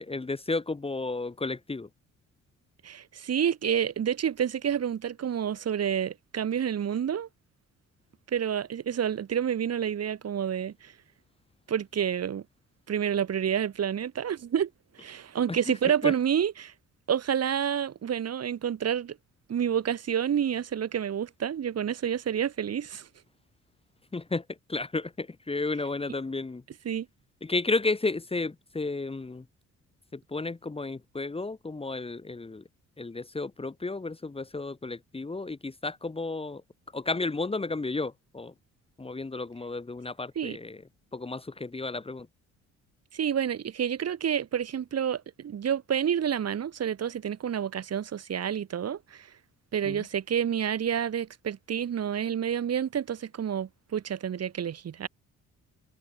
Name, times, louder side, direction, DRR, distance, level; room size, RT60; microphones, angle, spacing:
voice 1, 0.0-1.9 15.5-15.6 16.0-16.1 24.1-24.4 24.7-26.6 27.4-29.4 30.1-32.6 33.0-36.6 36.9-38.5 39.0-40.8 41.1-42.3 49.8-50.0, left 3 dB, 20° left, 1.7 m, -32 dB
voice 2, 2.8-7.3 8.3-10.9 11.7-12.4 12.9-14.7 15.0-16.7 17.1-19.2 19.5-23.1 26.8-27.1 40.3-40.6 43.1-49.3 49.7-55.1, right 8 dB, 55° right, 3.4 m, -29 dB
cardioid pair, 90°, 30 cm